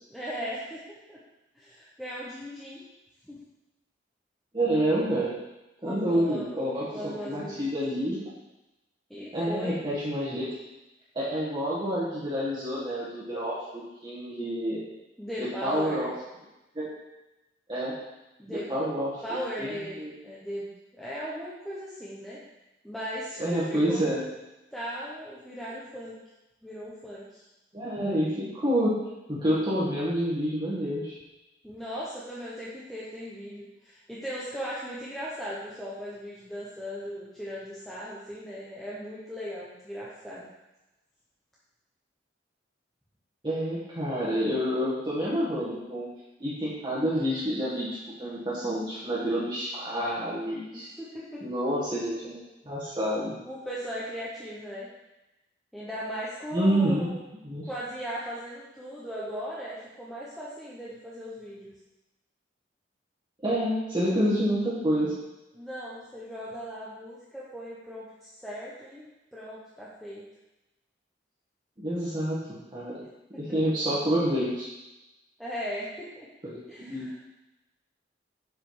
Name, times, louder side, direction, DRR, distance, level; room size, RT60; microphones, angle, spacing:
voice 1, 0.1-1.2 1.5-2.8 3.2-3.4 5.8-7.6 9.1-9.8 15.2-16.1 18.4-18.7 19.2-22.4 22.8-24.1 24.7-26.2 26.6-27.4 31.6-40.5 50.7-51.5 53.4-54.9 55.7-57.2 57.7-61.7 65.5-70.2 75.4-76.3 76.7-77.1, equal, ahead, -8 dB, 0.9 m, -38 dB
voice 2, 4.5-5.3 5.8-6.9 7.2-8.2 9.3-10.5 11.1-14.8 15.4-16.1 16.7-16.9 17.7-17.9 18.5-19.2 19.6-19.7 20.0-20.1 23.4-24.2 27.7-28.9 29.3-31.2 43.4-46.1 46.4-50.9 51.4-53.3 56.5-57.7 63.4-65.1 71.8-72.4 72.7-73.0 73.4-74.7 76.4-77.2, equal, 25° right, -8 dB, 1.6 m, -28 dB
7.0 x 5.1 x 4.7 m, 0.99 s
head